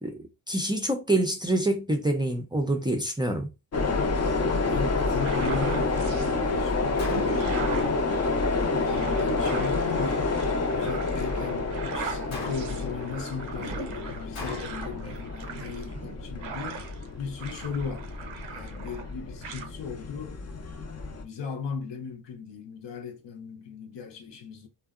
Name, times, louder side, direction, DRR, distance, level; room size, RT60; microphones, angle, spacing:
voice 1, 0.0-3.5, right 1 dB, 10° right, 0.5 m, -26 dB
sound 1, 3.7-21.2, left 3 dB, 35° left, 0.6 m, -29 dB
voice 2, 4.4-8.0 8.7-10.3 10.7-16.8 17.2-18.1 18.5-20.4 21.2-24.7, left 6 dB, 65° left, 0.8 m, -37 dB
sound 2, 5.1-6.3 6.8-17.1 17.4-19.1 19.4-19.7, right 6 dB, 80° right, 0.6 m, -40 dB
Gunshot gunfire, 7.0-7.7 12.3-13.0 14.4-15.0, left 3 dB, 90° left, 0.9 m, -38 dB
2.6 x 2.2 x 2.4 m
supercardioid pair, 45°, 47 cm